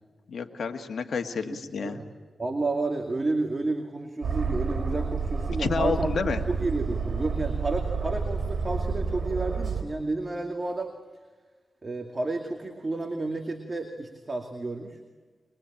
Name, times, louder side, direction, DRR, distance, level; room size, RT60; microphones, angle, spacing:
voice 1, 0.3-2.0 5.6-6.4, left 5 dB, 75° left, 5 dB, 1.9 m, -29 dB
voice 2, 1.5-2.1 2.4-6.1 6.5-10.9 11.8-15.0, right 2 dB, 35° right, 4 dB, 2.4 m, -31 dB
Aircraft, 4.2-9.8, right 5 dB, 60° right, 4.3 m, -29 dB
23.0 x 22.0 x 8.9 m, 1.4 s
cardioid pair, 75°, 0 cm